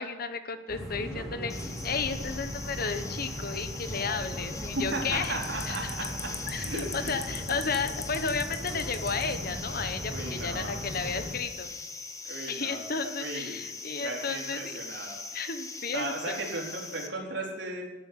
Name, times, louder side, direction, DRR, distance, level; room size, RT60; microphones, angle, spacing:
voice 1, 0.0-5.4 5.7-6.1 6.5-11.7 12.5-14.7 15.3-16.4, left 5 dB, 50° left, 9 dB, 1.2 m, -33 dB
sound 1, 0.7-11.3, equal, ahead, 3.8 m, -38 dB
sound 2, 1.5-17.1, left 4 dB, 15° left, 1.3 m, -40 dB
voice 2, 4.7-7.1 10.1-10.8 12.2-13.6 14.0-15.2 15.9-17.8, right 2 dB, 70° right, -1 dB, 4.2 m, -36 dB
13.5 x 9.0 x 9.8 m, 1.1 s
head